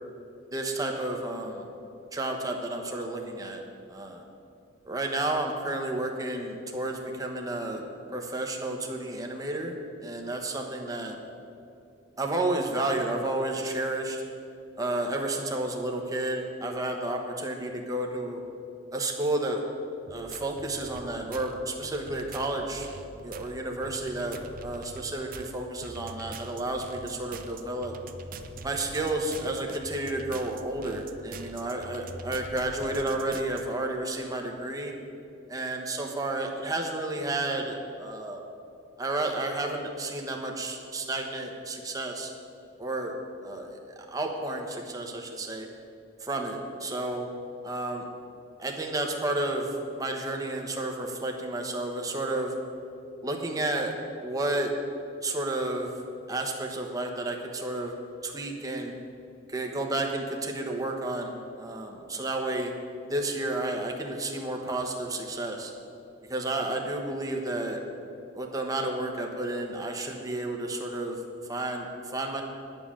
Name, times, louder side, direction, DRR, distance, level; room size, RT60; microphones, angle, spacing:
voice 1, 0.5-1.6 2.1-3.6 3.9-4.2 4.8-7.8 8.1-9.8 10.0-11.2 12.2-14.2 14.8-18.4 18.9-19.6 20.1-22.9 23.2-27.9 28.6-34.9 35.5-38.4 39.0-42.3 42.8-43.1 43.4-45.7 46.2-47.3 47.6-48.1 48.6-52.5 53.2-53.9 54.2-54.7 55.2-55.9 56.3-57.9 58.2-58.9 59.5-62.7 63.0-65.7 66.3-67.8 68.3-71.2 71.5-72.4, right 2 dB, 20° right, 2 dB, 1.2 m, -31 dB
sound 1, 20.1-33.6, right 3 dB, 50° right, 0.6 m, -44 dB
9.6 x 6.9 x 8.7 m, 2.6 s
head